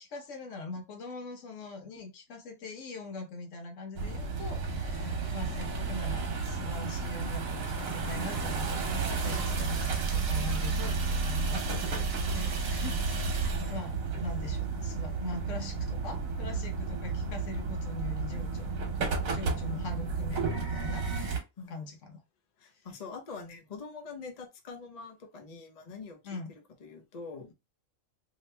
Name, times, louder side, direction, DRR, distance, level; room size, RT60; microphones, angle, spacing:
voice 1, 0.0-13.3 13.7-18.7 19.3-21.1 21.7-22.2 26.2-26.5, left 3 dB, 65° left, 1.1 m, -42 dB
sound 1, 4.0-21.4, right 4 dB, 80° right, 1.3 m, -32 dB
voice 2, 12.3-12.8 19.7-19.8 21.6-21.8 22.6-27.5, left 4 dB, 40° left, 0.6 m, -45 dB
2.8 x 2.7 x 3.2 m
omnidirectional pair, 1.4 m